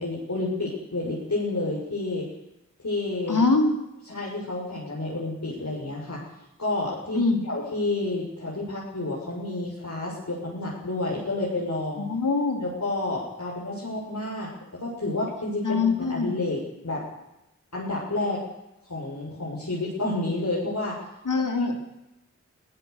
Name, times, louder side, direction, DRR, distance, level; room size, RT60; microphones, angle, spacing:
voice 1, 0.0-2.3 2.8-3.4 4.1-6.3 6.6-12.1 12.6-17.1 17.7-18.4 18.8-21.0, left 2 dB, 60° left, -5 dB, 6.9 m, -30 dB
voice 2, 3.3-3.7 7.1-7.4 12.1-12.6 15.6-16.4 21.3-21.7, left 3 dB, 80° left, 4 dB, 4.0 m, -23 dB
22.0 x 18.5 x 6.9 m, 0.89 s
wide cardioid pair, 45°, 31 cm